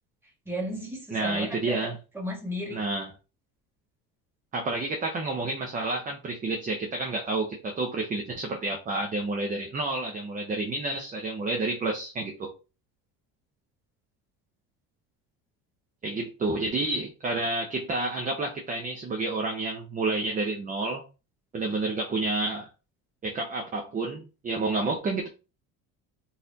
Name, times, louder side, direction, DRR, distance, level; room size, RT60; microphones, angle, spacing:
voice 1, 0.4-1.8 2.1-2.8, equal, 5° right, 1.4 m, -34 dB
voice 2, 1.1-2.0 2.7-3.1 4.5-12.5 16.0-21.0 21.5-22.7 23.2-25.3, right 2 dB, 25° right, 0.6 m, -30 dB
4.0 x 2.5 x 2.7 m
cardioid pair, 125°, 35 cm